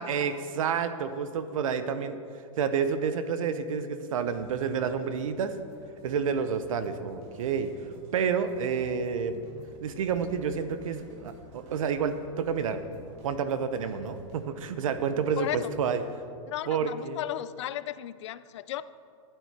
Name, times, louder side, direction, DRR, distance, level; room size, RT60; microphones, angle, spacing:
voice 1, 0.0-2.2 2.6-5.5 6.0-7.7 8.1-9.4 9.8-12.8 13.2-15.5 15.8-16.0 16.7-17.2, right 6 dB, 85° right, 11 dB, 0.9 m, -29 dB
sound 1, 4.1-16.2, equal, 35° right, 1.6 m, -52 dB
voice 2, 15.4-15.7 16.5-18.8, left 13 dB, 60° left, 16 dB, 0.4 m, -35 dB
12.0 x 9.1 x 4.3 m, 2.3 s
supercardioid pair, 160°, 17 cm